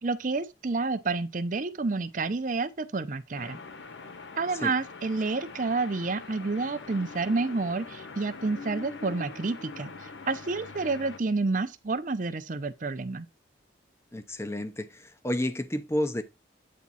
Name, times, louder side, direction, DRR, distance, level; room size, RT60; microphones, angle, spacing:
voice 1, 0.0-3.6 4.4-13.3, right 3 dB, 45° right, 0.6 m, -29 dB
sound 1, 3.3-11.2, left 4 dB, 75° left, 0.8 m, -43 dB
voice 2, 14.1-16.2, left 1 dB, 15° left, 0.6 m, -31 dB
8.6 x 3.6 x 4.1 m
head